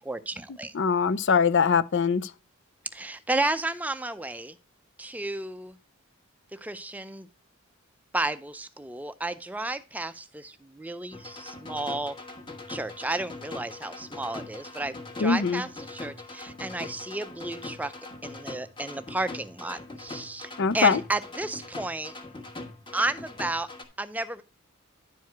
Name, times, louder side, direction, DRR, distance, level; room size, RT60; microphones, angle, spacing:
voice 1, 0.0-0.7 2.9-4.6 5.0-5.8 6.5-7.3 8.1-12.1 12.7-17.9 18.2-22.1 22.9-23.7 24.0-24.4, right 2 dB, 5° right, 0.5 m, -32 dB
voice 2, 0.7-2.3 15.2-15.6 20.6-21.0, left 5 dB, 55° left, 0.5 m, -22 dB
sound 1, 11.1-23.8, left 2 dB, 20° left, 1.3 m, -42 dB
10.5 x 4.7 x 4.6 m
head